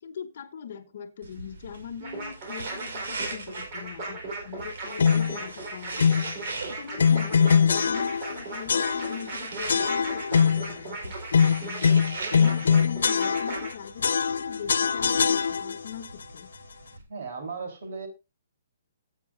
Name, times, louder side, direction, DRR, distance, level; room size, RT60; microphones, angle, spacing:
voice 1, 0.0-6.2 6.7-11.2 11.5-11.9 12.3-16.5, left 7 dB, 50° left, 3 dB, 1.1 m, -41 dB
sound 1, 1.2-17.0, right 3 dB, 80° right, 2.8 m, -42 dB
sound 2, 2.0-13.7, right 2 dB, 35° right, 4.0 m, -37 dB
sound 3, 5.0-5.4 6.0-6.3 7.0-8.4 8.7-9.3 9.7-10.7 11.3-13.7 14.0-15.9, left 6 dB, 85° left, 0.4 m, -22 dB
voice 2, 17.1-18.1, right 4 dB, 55° right, 5 dB, 3.6 m, -36 dB
14.5 x 7.6 x 2.6 m, 0.26 s
hypercardioid pair, 170°, 0 cm